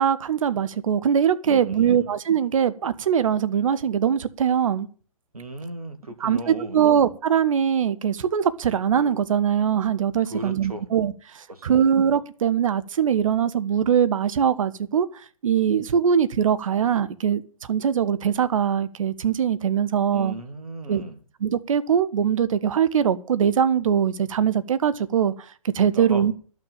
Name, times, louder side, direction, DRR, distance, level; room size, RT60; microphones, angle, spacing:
voice 1, 0.0-4.9 6.2-15.1 15.4-20.3 20.9-21.0 21.4-25.3 25.7-26.3, right 8 dB, 65° right, 14 dB, 1.1 m, -22 dB
voice 2, 1.5-2.1 5.3-7.0 10.3-10.9 11.5-11.8 20.1-21.2 25.9-26.2, right 1 dB, 85° right, 8 dB, 2.1 m, -36 dB
12.0 x 6.1 x 8.8 m, 0.41 s
figure-of-eight pair, 125°, 18 cm